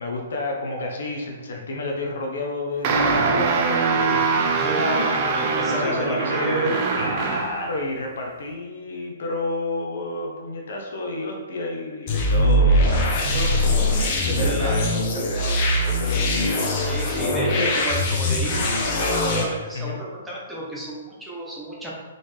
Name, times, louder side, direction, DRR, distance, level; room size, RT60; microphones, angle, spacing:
voice 1, 0.0-16.5 17.5-17.7 19.7-20.0, left 2 dB, 75° left, 0 dB, 0.9 m, -30 dB
sound 1, 2.8-7.7, right 4 dB, 40° right, 0.6 m, -23 dB
voice 2, 4.5-6.7 14.4-14.9 16.8-21.9, right 1 dB, 5° right, -6 dB, 1.1 m, -31 dB
sound 2, 12.1-19.4, left 1 dB, 40° left, 0.9 m, -21 dB
4.1 x 3.6 x 3.4 m, 1.4 s
hypercardioid pair, 140°, 0 cm